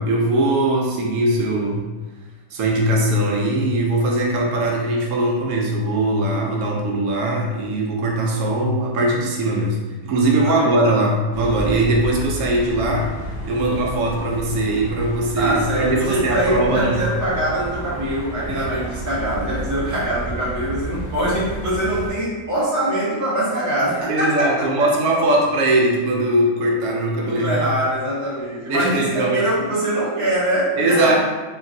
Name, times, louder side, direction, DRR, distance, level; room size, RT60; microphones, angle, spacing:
voice 1, 0.0-1.9 2.5-13.1 13.4-17.0 18.5-18.6 24.1-27.6 28.7-29.4 30.8-31.2, right 1 dB, 80° right, -1 dB, 1.1 m, -20 dB
sound 1, 11.3-22.1, right 1 dB, 50° right, 0.9 m, -31 dB
voice 2, 15.4-24.9 27.2-31.2, right 1 dB, 20° right, -8 dB, 0.6 m, -23 dB
3.0 x 2.6 x 2.6 m, 1.3 s
omnidirectional pair, 1.5 m